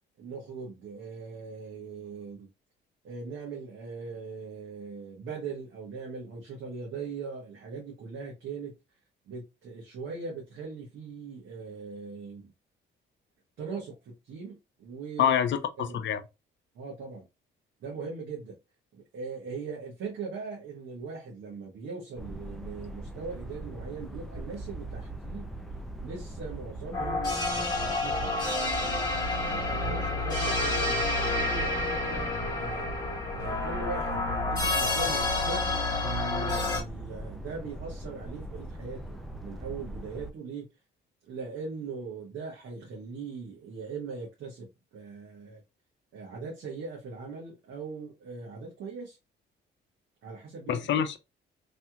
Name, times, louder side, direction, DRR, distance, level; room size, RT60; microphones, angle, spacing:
voice 1, 0.2-2.5 3.0-8.7 9.2-12.5 13.6-15.4 15.8-16.0 16.7-17.3 17.8-18.5 18.9-25.5 26.0-28.4 29.4-32.9 33.3-40.7 41.3-45.6 46.1-49.2 50.2-50.8, right 4 dB, 75° right, 1.2 m, -40 dB
voice 2, 15.2-16.2 50.7-51.2, left 9 dB, 70° left, 0.6 m, -26 dB
sound 1, 22.2-40.3, right 1 dB, ahead, 0.5 m, -41 dB
sound 2, 26.9-36.8, left 2 dB, 20° left, 1.5 m, -29 dB
3.2 x 2.8 x 2.4 m
cardioid pair, 90°, 20 cm